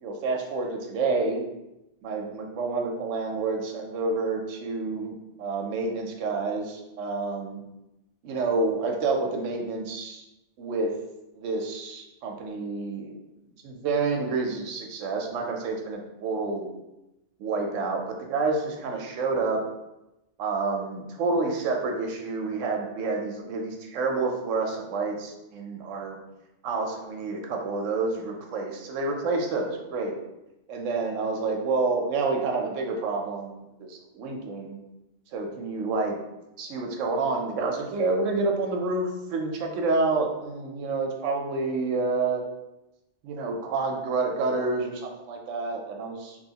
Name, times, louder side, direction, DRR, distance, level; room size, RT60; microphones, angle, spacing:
voice 1, 0.0-1.4 2.0-7.6 8.2-10.3 10.6-10.9 11.4-13.1 13.6-16.7 17.4-19.6 20.4-26.2 26.6-30.2 30.7-33.7 34.2-34.8 35.3-36.2 36.6-42.4 43.2-46.4, right 3 dB, 85° right, 2 dB, 1.0 m, -28 dB
3.1 x 2.8 x 2.8 m, 0.93 s
omnidirectional pair, 1.3 m